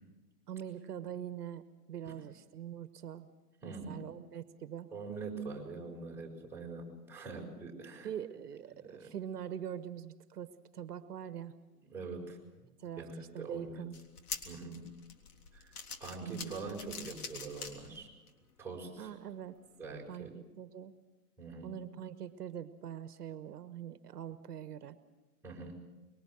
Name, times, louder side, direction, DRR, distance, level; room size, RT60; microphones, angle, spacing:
voice 1, 0.5-1.6 1.9-3.3 3.6-4.9 8.0-11.5 12.8-14.0 16.2-16.5 19.0-19.6 20.1-20.9 21.6-25.0, right 9 dB, 70° right, 12 dB, 1.2 m, -43 dB
voice 2, 3.6-4.0 4.9-8.1 8.8-9.1 11.8-12.5 13.0-13.8 14.4-14.8 15.5-15.7 16.0-18.1 18.6-19.1 19.8-20.3 21.4-21.7 25.4-25.8, right 4 dB, 5° right, -3 dB, 6.4 m, -44 dB
sound 1, 13.9-18.3 18.8-18.9 19.9-20.0, left 5 dB, 65° left, 3.6 m, -45 dB
24.5 x 22.5 x 6.2 m, 1.2 s
hypercardioid pair, 115°, 48 cm